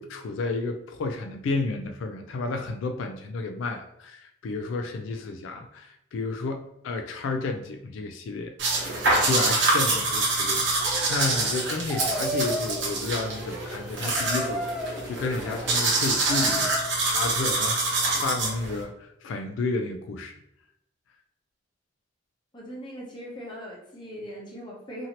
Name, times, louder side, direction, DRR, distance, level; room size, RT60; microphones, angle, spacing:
voice 1, 0.0-20.4, left 3 dB, 90° left, 5 dB, 0.3 m, -32 dB
Brushing Teeth, 8.6-18.8, right 2 dB, 80° right, 0.9 m, -26 dB
sound 1, 10.8-16.9, equal, 5° right, 0.3 m, -35 dB
voice 2, 22.5-25.1, equal, 25° left, -3 dB, 0.7 m, -40 dB
2.8 x 2.6 x 2.8 m, 0.79 s
head